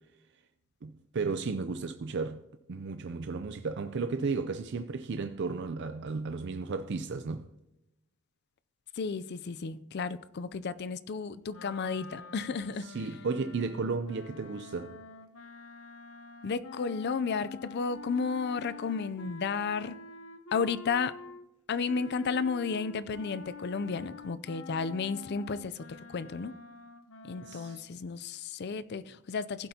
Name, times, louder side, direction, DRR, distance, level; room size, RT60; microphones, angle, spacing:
voice 1, 0.8-2.4 2.7-7.5 12.8-15.0 27.4-27.8, right 4 dB, 55° right, 0.5 m, -34 dB
voice 2, 9.0-12.9 16.4-20.0 20.5-21.1 21.7-26.5 27.2-29.7, left 5 dB, 50° left, 0.4 m, -33 dB
sound 1, 11.5-21.5 21.9-27.8, left 4 dB, 75° left, 0.8 m, -47 dB
15.0 x 7.7 x 2.8 m
head